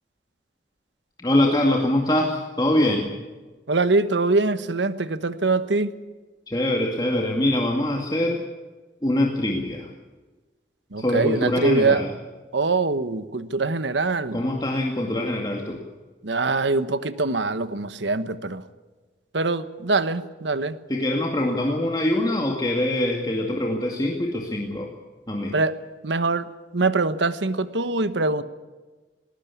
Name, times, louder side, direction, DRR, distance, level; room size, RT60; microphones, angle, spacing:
voice 1, 1.2-3.1 6.5-8.4 9.0-9.9 11.0-12.1 14.3-15.8 20.9-24.9 25.3-25.5, left 1 dB, 20° left, 0 dB, 2.3 m, -23 dB
voice 2, 3.7-6.0 10.9-12.0 12.5-14.4 16.2-18.6 19.3-20.8 25.5-26.5 26.7-28.4, right 3 dB, 80° right, 12 dB, 1.2 m, -23 dB
19.5 x 19.5 x 8.6 m, 1.3 s
head